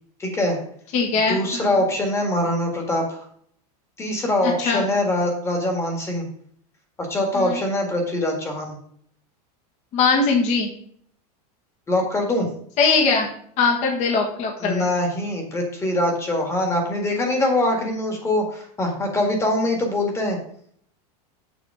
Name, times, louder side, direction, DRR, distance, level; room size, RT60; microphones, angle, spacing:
voice 1, 0.2-0.6 1.3-3.2 4.0-6.3 7.0-8.8 11.9-12.5 14.6-20.4, left 1 dB, 15° left, 3 dB, 1.9 m, -23 dB
voice 2, 0.9-1.7 4.4-4.8 7.3-7.6 9.9-10.7 12.8-13.3 13.6-14.8, left 4 dB, 35° left, 0 dB, 1.7 m, -21 dB
7.1 x 6.5 x 4.9 m, 0.63 s
supercardioid pair, 155°, 20 cm